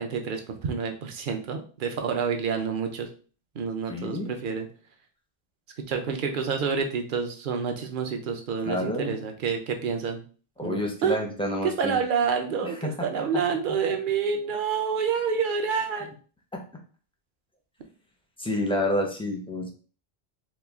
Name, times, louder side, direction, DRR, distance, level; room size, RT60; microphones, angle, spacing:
voice 1, 0.0-3.1 3.5-4.7 5.9-10.2 10.6-11.2 11.6-16.1, right 6 dB, 55° right, 4 dB, 0.7 m, -28 dB
voice 2, 3.9-4.4 8.6-9.2 10.6-12.0 12.6-13.2 16.5-16.6 18.4-19.7, left 1 dB, 10° left, 1 dB, 0.4 m, -29 dB
3.1 x 2.3 x 3.4 m, 0.39 s
omnidirectional pair, 1.1 m